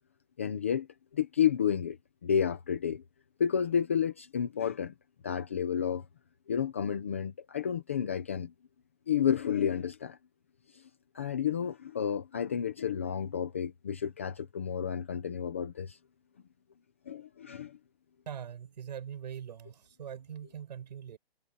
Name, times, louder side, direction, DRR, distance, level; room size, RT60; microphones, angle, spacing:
voice 1, 0.4-0.9 1.1-3.0 3.4-4.9 5.2-6.1 6.5-8.5 9.1-10.2 10.7-10.9 11.1-16.0 17.1-17.8, left 8 dB, 15° left, 0.6 m, -31 dB
voice 2, 18.2-21.2, right 8 dB, 45° right, 6.9 m, -42 dB
hypercardioid pair, 180°, 31 cm